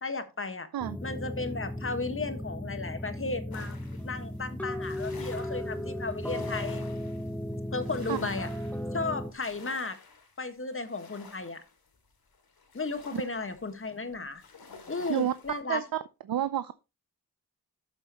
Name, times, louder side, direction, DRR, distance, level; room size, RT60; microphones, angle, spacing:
voice 1, 0.0-0.7 1.0-3.7 4.0-6.9 7.7-8.5 8.9-10.0 10.4-11.6 12.7-14.4 14.9-15.8, left 3 dB, 35° left, 1.6 m, -34 dB
sound 1, 0.8-9.3, left 1 dB, 5° left, 0.9 m, -36 dB
sound 2, 3.5-15.6, left 4 dB, 75° left, 2.8 m, -51 dB
voice 2, 16.3-16.7, right 10 dB, 70° right, 0.6 m, -28 dB
12.5 x 7.2 x 3.0 m
cardioid pair, 75°, 37 cm